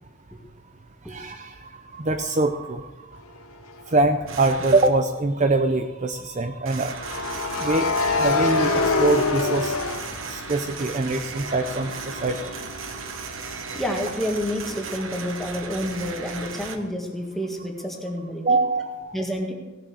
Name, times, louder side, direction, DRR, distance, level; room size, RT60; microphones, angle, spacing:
voice 1, 1.1-3.1 3.9-9.9 10.2-12.7 13.7-13.8 18.4-19.2, right 2 dB, 35° right, 7 dB, 0.6 m, -24 dB
sound 1, 3.7-3.9 7.0-10.9 11.3-14.9, left 3 dB, 85° left, 1.1 m, -26 dB
sound 2, 4.3-4.9 6.6-16.8, right 5 dB, 65° right, 1.2 m, -36 dB
voice 2, 13.7-18.4 19.1-19.5, equal, ahead, 1 dB, 1.8 m, -29 dB
16.5 x 7.5 x 6.5 m, 1.2 s
head